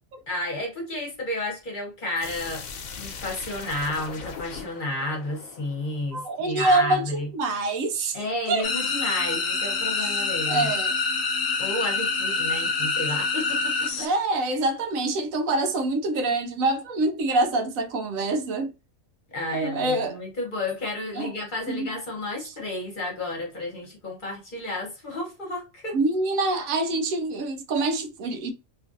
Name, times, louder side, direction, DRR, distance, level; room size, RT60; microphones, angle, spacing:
voice 1, 0.3-2.6 3.0-7.3 8.1-10.7 11.6-14.1 19.3-26.0, left 1 dB, 40° left, 1.0 m, -31 dB
sound 1, 2.2-6.9, left 5 dB, 90° left, 1.1 m, -40 dB
voice 2, 6.1-8.2 8.5-8.7 10.0-10.1 10.5-10.9 14.0-18.7 19.5-20.2 21.2-21.3 21.7-21.9 25.9-28.5, right 2 dB, 85° right, 1.1 m, -25 dB
sound 2, 8.6-14.1, left 4 dB, 60° left, 0.8 m, -26 dB
3.0 x 2.5 x 2.5 m
omnidirectional pair, 1.4 m